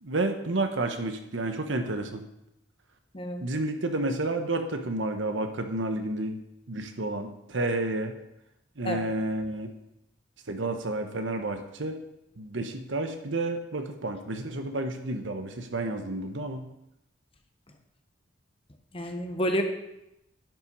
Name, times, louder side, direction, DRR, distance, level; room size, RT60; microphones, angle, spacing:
voice 1, 0.0-2.2 3.4-6.4 6.7-8.1 8.8-9.7 10.5-12.0 12.4-16.7, right 2 dB, 75° right, 6 dB, 1.0 m, -30 dB
voice 2, 3.1-3.5 8.8-9.0 18.9-19.6, equal, 30° left, 5 dB, 1.0 m, -29 dB
10.5 x 5.9 x 5.4 m, 0.86 s
head